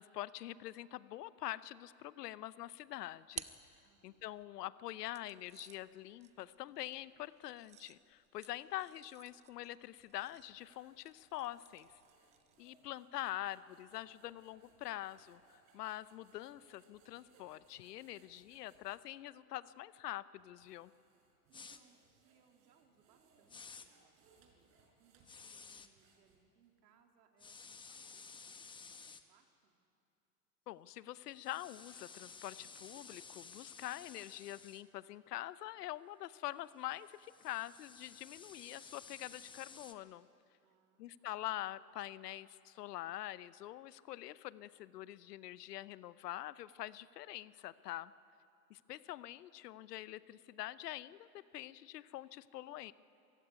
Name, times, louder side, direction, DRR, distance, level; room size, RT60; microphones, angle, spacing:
voice 1, 0.0-3.6 4.0-12.0 12.6-20.9 30.7-40.3 41.0-48.1 48.7-52.9, left 15 dB, 80° left, 17 dB, 0.9 m, -45 dB
sound 1, 2.6-4.4 5.1-12.7, right 9 dB, 15° right, 0.5 m, -55 dB
voice 2, 3.8-4.3 12.5-12.9 21.5-29.8 40.6-41.3, right 6 dB, 80° right, 3 dB, 3.1 m, -72 dB
sound 2, 9.9-19.0 19.6-19.8 20.4-26.7, right 4 dB, 50° right, 5.4 m, -71 dB
sound 3, 21.5-21.8 23.5-23.9 25.3-25.9 27.4-29.2 31.3-34.8 36.9-39.9, left 5 dB, 10° left, 0.9 m, -54 dB
25.0 x 15.5 x 9.7 m, 2.6 s
supercardioid pair, 130°, 47 cm